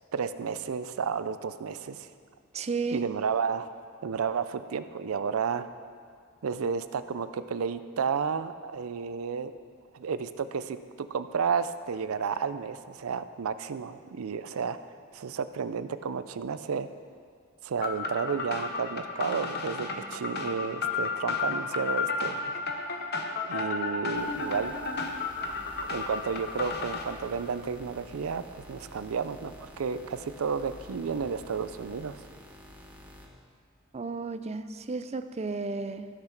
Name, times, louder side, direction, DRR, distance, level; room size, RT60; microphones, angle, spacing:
voice 1, 0.1-2.1 2.9-3.7 4.0-5.7 6.4-9.5 9.9-14.8 15.1-16.9 17.6-22.6 23.5-24.8 25.9-32.2, right 6 dB, 85° right, 12 dB, 0.5 m, -32 dB
voice 2, 2.5-3.0 33.9-36.1, right 4 dB, 30° right, 10 dB, 0.4 m, -33 dB
sound 1, 17.8-27.0, left 4 dB, 50° left, 0.9 m, -33 dB
sound 2, 24.1-33.3, equal, 10° right, 1.1 m, -49 dB
14.5 x 6.0 x 5.9 m, 2.2 s
head